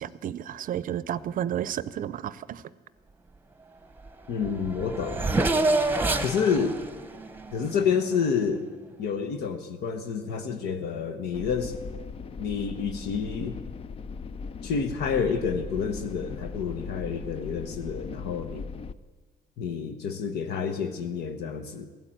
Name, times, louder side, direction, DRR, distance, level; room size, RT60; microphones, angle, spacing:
voice 1, 0.0-2.6, right 10 dB, 55° right, 18 dB, 0.6 m, -32 dB
Race car auto racing / Accelerating revving vroom, 4.1-4.2 4.4-8.4, right 2 dB, 10° right, 1.0 m, -28 dB
voice 2, 4.3-5.3 6.2-6.8 7.5-8.6 9.0-11.8 12.4-13.6 14.6-18.7 19.6-21.9, left 6 dB, 75° left, 6 dB, 1.1 m, -29 dB
sound 1, 11.3-18.9, left 5 dB, 35° left, 0.5 m, -38 dB
15.5 x 9.1 x 9.0 m, 1.4 s
cardioid pair, 110°, 17 cm